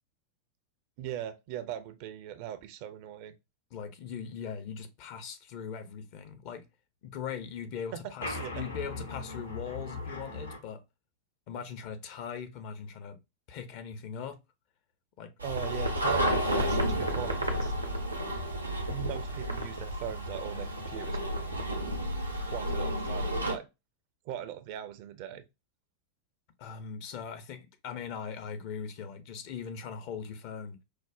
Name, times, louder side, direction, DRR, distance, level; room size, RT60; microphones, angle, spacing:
voice 1, 1.0-3.3 7.9-8.0 8.4-8.7 15.4-17.7 18.9-21.2 22.5-23.7 24.3-25.4, right 11 dB, 45° right, 0.4 m, -40 dB
voice 2, 3.7-6.6 7.0-10.8 11.5-13.2 13.5-14.4 15.2-15.3 26.6-30.8, left 7 dB, 45° left, 0.5 m, -40 dB
sound 1, 8.2-10.6, left 2 dB, 75° left, 0.8 m, -38 dB
sound 2, 15.4-23.5, equal, 85° right, 0.6 m, -31 dB
4.8 x 2.0 x 2.3 m
figure-of-eight pair, 90°, 0 cm